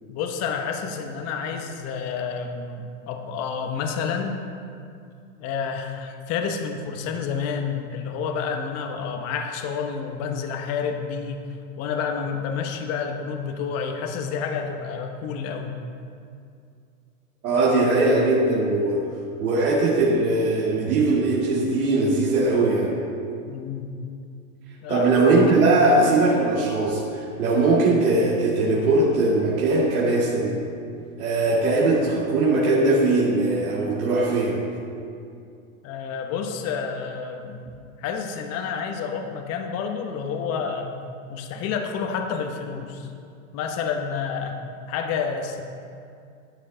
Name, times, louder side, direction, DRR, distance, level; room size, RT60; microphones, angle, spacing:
voice 1, 0.1-4.4 5.4-11.5 11.8-15.8 23.5-23.9 24.8-25.1 35.8-37.6 38.0-40.9 41.3-43.1 43.5-44.6 44.9-45.6, left 6 dB, 35° left, 4 dB, 1.0 m, -29 dB
voice 2, 17.4-19.0 19.4-22.9 24.9-30.6 31.2-34.6, right 2 dB, 80° right, -6 dB, 2.2 m, -20 dB
11.5 x 9.7 x 3.9 m, 2.5 s
hypercardioid pair, 125°, 42 cm